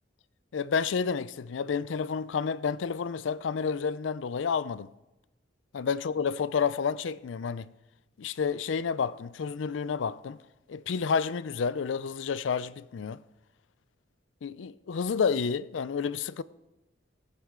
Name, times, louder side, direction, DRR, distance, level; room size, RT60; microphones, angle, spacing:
voice 1, 0.5-4.9 5.7-7.7 8.2-10.4 10.7-13.2 14.4-16.4, left 6 dB, 80° left, 0.4 m, -30 dB
17.5 x 8.6 x 3.7 m
head